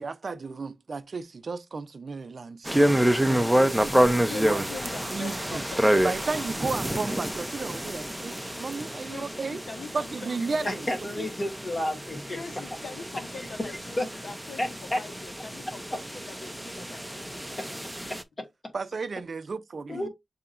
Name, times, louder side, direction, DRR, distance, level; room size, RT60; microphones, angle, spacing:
voice 1, 0.0-2.9 3.3-4.6 5.1-5.6 6.0-9.6 9.9-10.9 11.2-11.3 18.7-20.1, right 4 dB, 55° right, 0.6 m, -34 dB
sound 1, 2.7-18.2, right 1 dB, 5° right, 0.6 m, -28 dB
voice 2, 4.0-6.7 9.0-10.9 12.3-18.1 19.9-20.1, left 4 dB, 75° left, 1.3 m, -43 dB
voice 3, 10.6-12.6 13.6-13.7 14.0-14.1 14.6-15.0 17.6-17.7 18.1-18.7 19.9-20.1, left 1 dB, 35° left, 1.3 m, -31 dB
6.8 x 2.8 x 2.5 m
wide cardioid pair, 100°, 0 cm